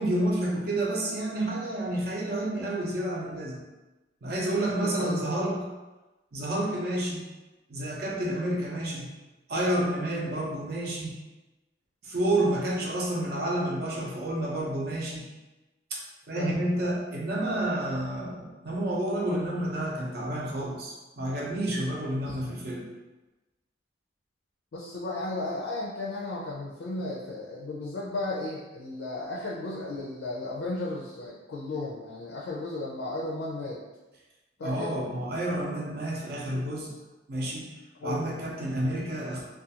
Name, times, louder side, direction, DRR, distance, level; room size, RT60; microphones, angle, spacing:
voice 1, 0.0-3.6 4.2-5.7 6.3-7.2 7.7-9.1 9.5-11.2 12.0-15.2 15.9-16.0 16.3-22.9 34.6-36.9 37.3-37.7 38.0-39.4, right 1 dB, 55° right, -3 dB, 0.6 m, -29 dB
voice 2, 4.8-5.3 16.3-16.8 22.2-22.4 24.7-33.8 34.6-35.0 38.0-38.3, left 2 dB, 65° left, -3 dB, 0.4 m, -34 dB
2.4 x 2.3 x 2.7 m, 1.1 s
head